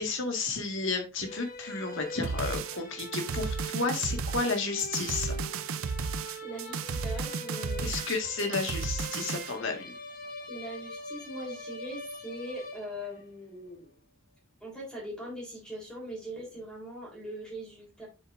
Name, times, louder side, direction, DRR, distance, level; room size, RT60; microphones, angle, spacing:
voice 1, 0.0-5.4 7.8-9.9, left 4 dB, 55° left, 3 dB, 1.7 m, -32 dB
sound 1, 1.2-13.3, left 1 dB, 40° left, 1.7 m, -43 dB
sound 2, 2.2-9.5, right 5 dB, 65° right, 0.5 m, -34 dB
voice 2, 6.4-8.0 10.5-14.0 14.6-18.1, equal, 5° left, -4 dB, 3.5 m, -41 dB
7.3 x 7.0 x 2.5 m, 0.29 s
head